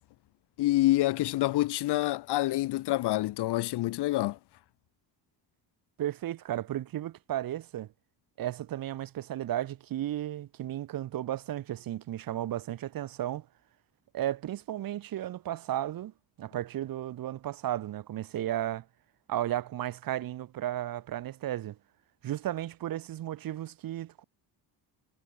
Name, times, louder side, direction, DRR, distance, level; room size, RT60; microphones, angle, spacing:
voice 1, 0.6-4.4, left 16 dB, 60° left, 0.6 m, -27 dB
voice 2, 6.0-7.9 8.4-13.5 14.1-16.1 16.4-18.9 19.3-21.8 22.2-24.2, right 12 dB, 45° right, 0.8 m, -34 dB
cardioid pair, 145°, 47 cm